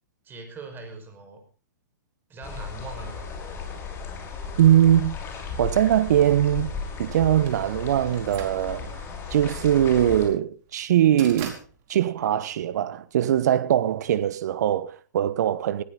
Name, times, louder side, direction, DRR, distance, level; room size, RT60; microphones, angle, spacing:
voice 1, 0.2-1.4 2.3-3.3, right 3 dB, 20° right, 5.5 m, -40 dB
sound 1, 2.4-10.3, left 5 dB, 25° left, 5.7 m, -35 dB
voice 2, 4.6-5.1 5.6-6.7 7.0-9.0 9.3-11.6 11.9-15.8, right 11 dB, 60° right, 1.3 m, -21 dB
sound 2, 7.1-13.3, right 7 dB, 35° right, 4.9 m, -44 dB
20.0 x 15.0 x 4.1 m
hypercardioid pair, 120°, 10 cm